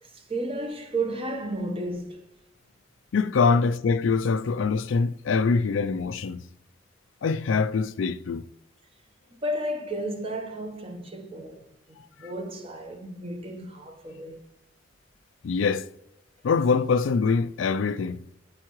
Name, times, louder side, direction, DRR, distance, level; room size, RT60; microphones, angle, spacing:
voice 1, 0.0-2.2 9.4-14.4, right 1 dB, 30° right, 1.0 m, -33 dB
voice 2, 3.1-6.4 7.2-8.4 15.4-15.9 16.4-18.2, left 4 dB, 85° left, 0.4 m, -24 dB
13.5 x 4.6 x 3.1 m
head